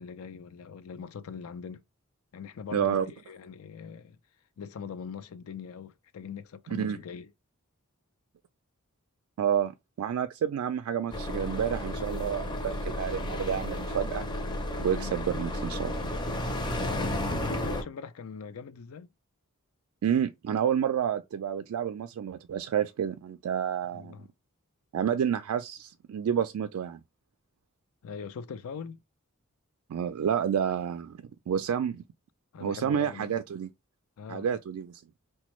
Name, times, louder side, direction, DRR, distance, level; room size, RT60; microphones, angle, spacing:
voice 1, 0.0-1.8 2.3-4.2 4.6-7.3 14.9-15.1 16.7-19.1 23.9-24.3 28.0-29.0 32.5-33.4 34.2-34.5, left 6 dB, 75° left, 0.4 m, -41 dB
voice 2, 2.7-3.1 6.7-7.0 9.4-14.3 14.8-15.9 20.0-24.2 24.9-27.0 29.9-32.0 32.6-33.7 34.3-35.0, right 8 dB, 85° right, 0.3 m, -29 dB
sound 1, 11.1-17.8, left 1 dB, 20° left, 0.5 m, -32 dB
4.0 x 2.2 x 3.0 m
head